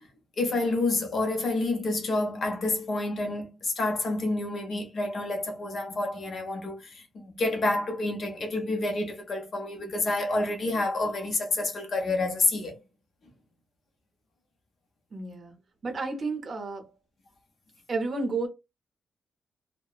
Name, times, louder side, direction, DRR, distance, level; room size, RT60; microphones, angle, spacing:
voice 1, 0.4-7.0 7.4-12.8, left 2 dB, 45° left, 0.7 m, -28 dB
voice 2, 15.1-15.5 15.8-16.9 17.9-18.5, right 3 dB, 40° right, 0.7 m, -31 dB
2.8 x 2.0 x 2.4 m
wide cardioid pair, 170°, 0 cm